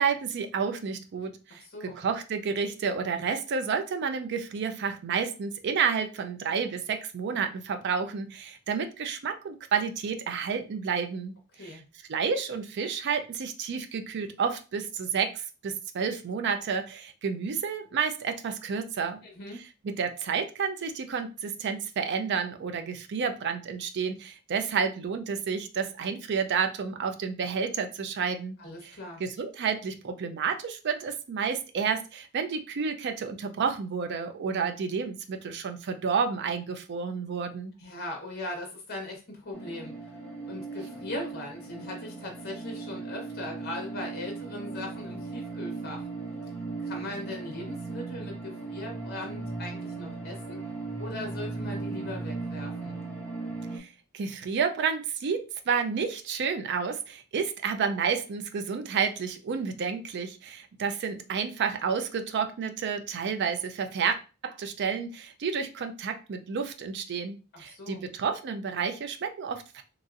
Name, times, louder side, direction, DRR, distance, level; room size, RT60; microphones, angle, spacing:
voice 1, 0.0-11.3 11.6-11.8 12.1-19.2 19.8-28.6 28.8-37.7 53.7-53.9 54.1-64.2 64.4-69.8, right 6 dB, 55° right, 7 dB, 0.4 m, -30 dB
voice 2, 1.5-2.0 11.6-11.8 19.2-19.6 28.6-29.2 37.8-46.1 46.8-50.6 51.0-53.0 67.5-68.0, left 1 dB, 50° left, 2 dB, 0.9 m, -39 dB
sound 1, 39.5-53.8, right 3 dB, 5° left, 0.4 m, -37 dB
2.9 x 2.6 x 2.4 m, 0.33 s
head